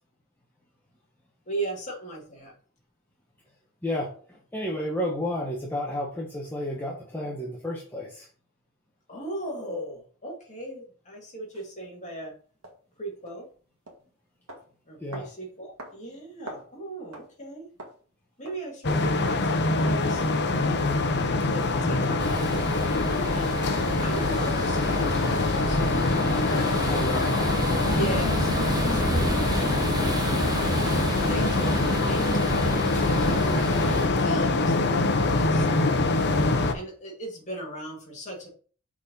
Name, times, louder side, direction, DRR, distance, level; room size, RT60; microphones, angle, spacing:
voice 1, 1.5-2.5 9.1-12.3 13.0-13.5 14.9-17.7 18.4-20.3 21.2-22.5 23.0-23.6 24.0-26.7 27.9-29.3 30.8-35.7 36.7-38.5, right 1 dB, 35° left, -2 dB, 2.3 m, -38 dB
voice 2, 3.8-8.3 15.0-15.3 21.8-22.2 26.8-27.4, left 1 dB, 10° left, -4 dB, 1.0 m, -32 dB
sound 1, 11.5-11.7 12.6-12.7 13.3-13.4 13.9-14.0 14.5-14.6 15.1-15.3 15.8-16.0 16.2-16.7 17.1-17.3 17.8-18.0 18.4-18.6, right 1 dB, 75° right, 1.7 m, -42 dB
sound 2, 18.8-36.7, left 3 dB, 55° left, 0.7 m, -24 dB
sound 3, 22.2-34.1, right 1 dB, 20° right, 0.7 m, -31 dB
6.0 x 4.2 x 4.0 m, 0.42 s
head